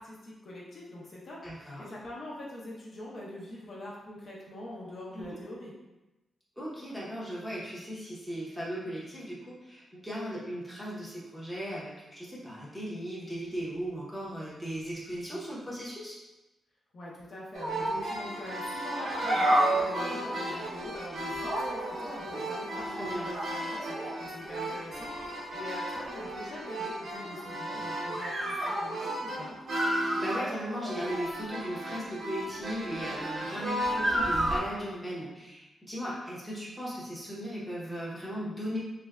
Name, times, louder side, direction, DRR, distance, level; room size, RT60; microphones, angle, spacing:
voice 1, 0.0-5.7 16.9-29.6, left 1 dB, 40° left, -5 dB, 0.7 m, -44 dB
voice 2, 1.4-1.9 5.1-5.2 6.6-16.2 22.8-23.3 29.9-38.8, equal, ahead, -7 dB, 0.7 m, -37 dB
sound 1, 17.5-34.6, right 1 dB, 50° right, 0.7 m, -32 dB
3.3 x 2.2 x 3.4 m, 1.0 s
wide cardioid pair, 170°, 0 cm